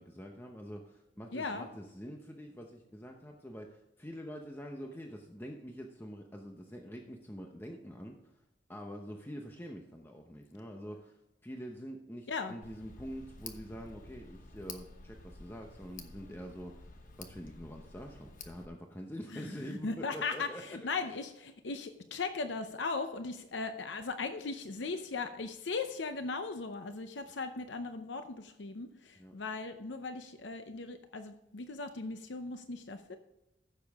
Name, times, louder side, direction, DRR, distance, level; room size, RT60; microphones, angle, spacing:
voice 1, 0.0-8.3 8.7-20.8 29.2-29.3, equal, 10° left, 2 dB, 0.8 m, -45 dB
voice 2, 1.3-1.7 12.3-12.5 19.3-33.2, left 4 dB, 80° left, 8 dB, 0.7 m, -38 dB
Tick, 12.6-18.7, left 4 dB, 50° left, 1.1 m, -50 dB
15.0 x 6.9 x 3.5 m, 0.92 s
head